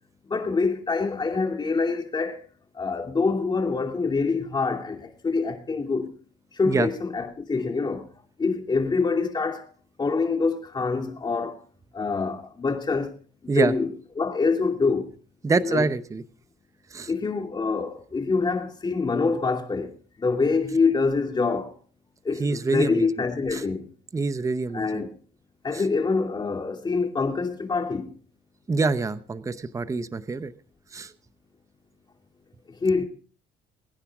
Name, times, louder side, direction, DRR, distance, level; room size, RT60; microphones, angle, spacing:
voice 1, 0.3-2.4 2.7-6.1 6.5-8.1 8.4-9.7 10.0-11.6 11.9-13.1 13.4-13.9 14.2-15.1 15.6-15.9 17.1-19.9 20.2-21.7 22.2-23.9 24.7-25.1 25.6-28.1 32.8-33.1, left 4 dB, 25° left, 2.7 m, -25 dB
voice 2, 15.4-16.2 16.9-17.1 22.4-23.1 23.5-23.6 24.1-25.0 28.7-30.5 30.9-31.1, right 4 dB, 20° right, 0.8 m, -25 dB
22.5 x 9.9 x 3.6 m
cardioid pair, 110°, 17 cm